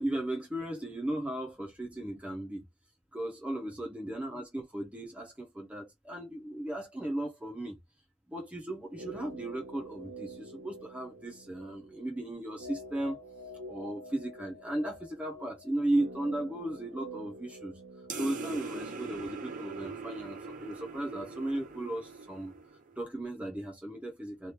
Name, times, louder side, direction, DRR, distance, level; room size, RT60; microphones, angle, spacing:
voice 1, 0.0-2.7 3.1-7.8 8.3-13.2 13.7-17.8 18.2-22.5 23.0-24.5, right 1 dB, 5° right, 0.8 m, -36 dB
sound 1, 8.8-21.0 21.2-21.3, right 1 dB, 80° right, 0.9 m, -48 dB
sound 2, 18.1-23.0, right 3 dB, 40° right, 0.8 m, -41 dB
3.2 x 2.5 x 2.9 m
head